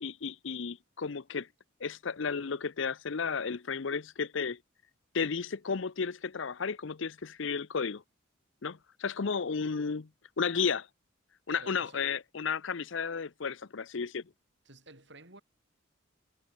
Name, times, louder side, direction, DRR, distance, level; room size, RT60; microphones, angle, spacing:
voice 1, 0.0-1.5 1.8-4.6 5.1-8.0 8.6-10.1 10.4-10.9 11.5-14.2, left 5 dB, 65° left, 0.6 m, -33 dB
voice 2, 11.5-12.2 14.6-15.4, right 2 dB, 55° right, 6.2 m, -51 dB
head